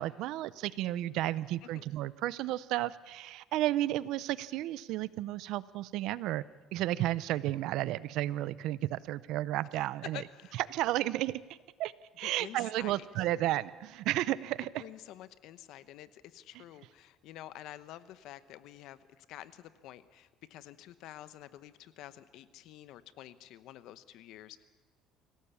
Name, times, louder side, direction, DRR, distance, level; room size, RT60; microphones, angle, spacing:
voice 1, 0.0-6.4 6.7-10.2 10.5-11.4 11.8-14.8, right 15 dB, 70° right, 18 dB, 0.6 m, -32 dB
voice 2, 10.1-10.6 12.2-13.0 14.8-24.6, left 13 dB, 70° left, 14 dB, 1.0 m, -49 dB
25.5 x 17.0 x 7.1 m, 1.3 s
cardioid pair, 125°, 0 cm